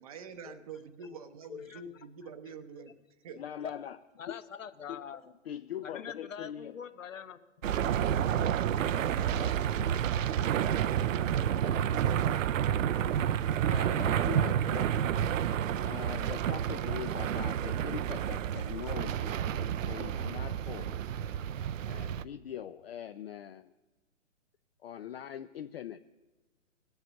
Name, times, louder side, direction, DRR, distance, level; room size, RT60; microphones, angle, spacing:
voice 1, 0.0-2.9 3.2-3.4, right 5 dB, 30° right, 10 dB, 0.6 m, -46 dB
voice 2, 1.5-1.8 2.8-2.9 3.6-3.7 4.2-5.3 5.8-7.7 8.8-9.6, left 7 dB, 75° left, 12 dB, 1.0 m, -44 dB
voice 3, 3.4-4.0 4.3-4.4 4.9-5.0 5.4-6.8 13.7-15.0 15.4-15.5 15.8-19.3 19.8-21.0 21.9-23.7 24.8-26.0, left 10 dB, 50° left, 11 dB, 0.4 m, -42 dB
sound 1, 7.6-22.2, right 9 dB, 75° right, 0.5 m, -30 dB
19.0 x 8.1 x 6.8 m, 1.2 s
hypercardioid pair, 145°, 39 cm